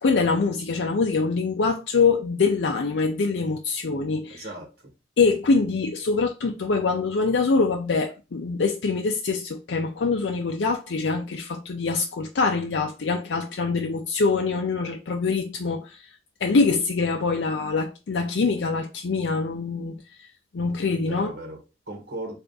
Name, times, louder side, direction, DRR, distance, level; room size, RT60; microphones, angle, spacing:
voice 1, 0.0-4.5 5.2-16.1 16.4-20.3 20.5-21.3, left 4 dB, 85° left, 0.5 m, -24 dB
voice 2, 4.3-4.9 21.1-22.3, right 2 dB, 60° right, 1.4 m, -37 dB
3.4 x 2.5 x 3.8 m
head